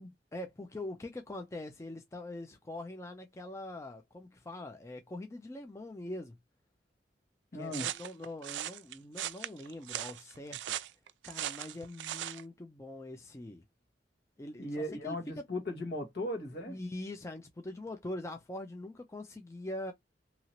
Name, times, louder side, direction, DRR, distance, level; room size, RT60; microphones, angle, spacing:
voice 1, 0.3-6.4 7.5-10.7 11.2-13.6 14.4-15.4 16.7-19.9, left 1 dB, 15° left, 0.4 m, -43 dB
voice 2, 7.5-7.9 14.6-16.8, left 1 dB, 60° left, 1.3 m, -37 dB
sound 1, 7.7-12.4, right 12 dB, 80° right, 0.3 m, -39 dB
2.8 x 2.7 x 2.8 m
head